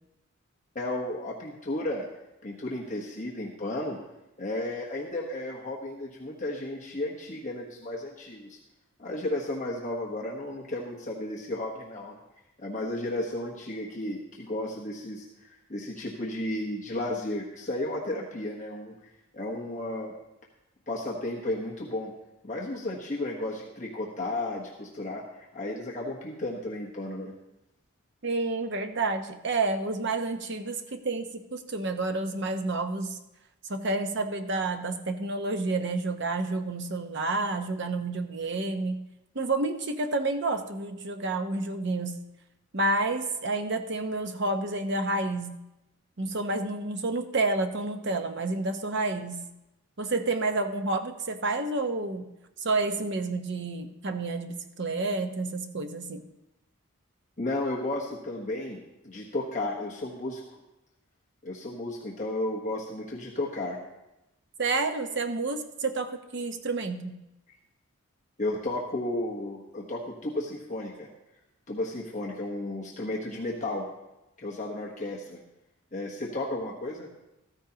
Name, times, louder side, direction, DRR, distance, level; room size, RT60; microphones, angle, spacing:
voice 1, 0.7-2.1 2.4-4.0 4.4-8.6 9.0-12.2 12.6-20.1 20.9-22.1 22.4-27.3 57.4-58.8 59.0-60.6 61.4-63.8 68.4-71.1 71.7-73.8 74.4-75.4 75.9-77.1, left 1 dB, 35° left, -2 dB, 1.1 m, -33 dB
voice 2, 28.2-33.2 33.7-39.0 39.3-42.2 42.7-45.5 46.2-49.4 50.0-52.3 52.6-56.2 64.6-67.2, right 3 dB, 55° right, 6 dB, 0.8 m, -29 dB
14.0 x 14.0 x 2.9 m, 0.92 s
head